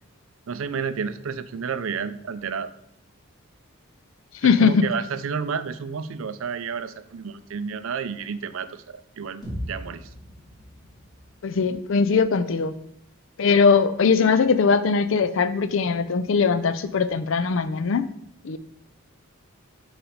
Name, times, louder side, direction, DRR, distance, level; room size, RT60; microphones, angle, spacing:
voice 1, 0.5-2.7 4.4-10.1, right 6 dB, 70° right, 0.4 m, -31 dB
voice 2, 4.4-4.8 11.4-12.7 13.4-18.0 18.4-18.6, left 5 dB, 60° left, 0.4 m, -20 dB
sound 1, 9.4-13.4, equal, 20° left, 2.1 m, -40 dB
5.8 x 4.1 x 5.0 m
head